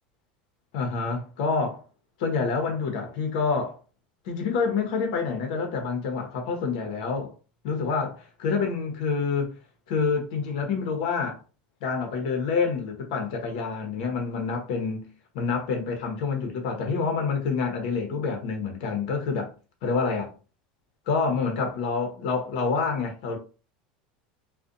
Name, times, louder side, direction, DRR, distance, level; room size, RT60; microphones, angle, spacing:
voice 1, 0.7-1.8 2.2-3.8 4.2-7.3 7.6-9.6 9.9-11.4 11.8-15.1 15.3-19.5 19.8-20.3 21.1-23.4, left 5 dB, 75° left, 0.8 m, -27 dB
2.4 x 2.2 x 2.5 m
supercardioid pair, 120°, 4 cm